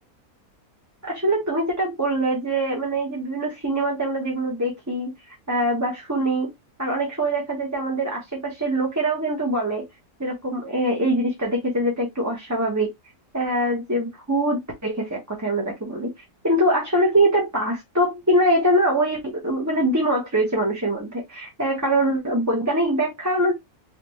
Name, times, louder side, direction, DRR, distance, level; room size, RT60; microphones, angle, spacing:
voice 1, 1.0-6.5 6.8-9.9 10.2-12.9 13.3-16.1 16.4-23.5, right 1 dB, 15° right, 0.7 m, -23 dB
3.4 x 2.9 x 3.0 m
omnidirectional pair, 1.6 m